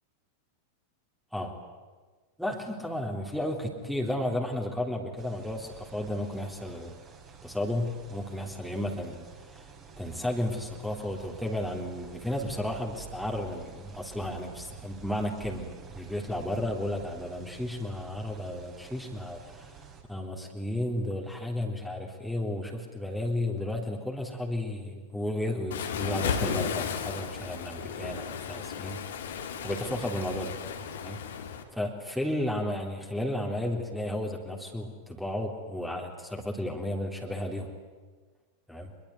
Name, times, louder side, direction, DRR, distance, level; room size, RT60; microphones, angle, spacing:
voice 1, 2.4-6.9 7.4-9.7 10.0-19.7 20.1-29.0 29.6-30.6 31.0-31.2 31.7-37.7 38.7-38.9, left 1 dB, ahead, 1 dB, 3.5 m, -33 dB
sound 1, 5.2-20.0, right 6 dB, 30° right, 5.1 m, -49 dB
Waves surf, 25.7-31.6, left 7 dB, 60° left, 2.7 m, -34 dB
24.5 x 22.5 x 9.6 m, 1.4 s
figure-of-eight pair, 90°, 0 cm